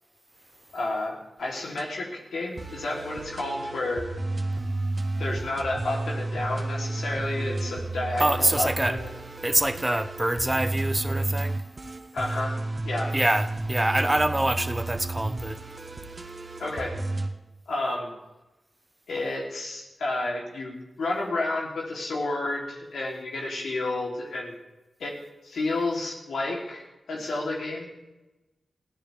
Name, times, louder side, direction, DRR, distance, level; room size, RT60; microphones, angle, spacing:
voice 1, 0.7-4.1 5.2-9.1 12.1-12.5 12.8-13.1 16.6-17.0 17.7-18.1 19.1-24.5 25.0-25.2 25.4-27.9, left 2 dB, 85° left, 3.4 m, -31 dB
sound 1, 1.4-1.8 2.6-17.3, right 2 dB, 45° right, 1.6 m, -32 dB
voice 2, 8.2-9.0 9.4-11.6 13.1-15.6, right 1 dB, 20° right, 1.0 m, -25 dB
22.5 x 15.5 x 3.6 m
cardioid pair, 40°, 0 cm